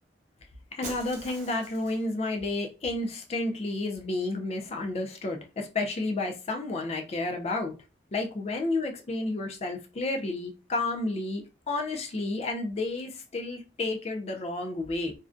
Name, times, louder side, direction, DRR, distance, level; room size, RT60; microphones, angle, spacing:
voice 1, 0.7-7.7 8.1-15.1, left 2 dB, 35° left, 0.4 m, -31 dB
Shatter, 0.8-2.2, right 2 dB, 40° right, 0.7 m, -43 dB
2.5 x 2.1 x 2.4 m
head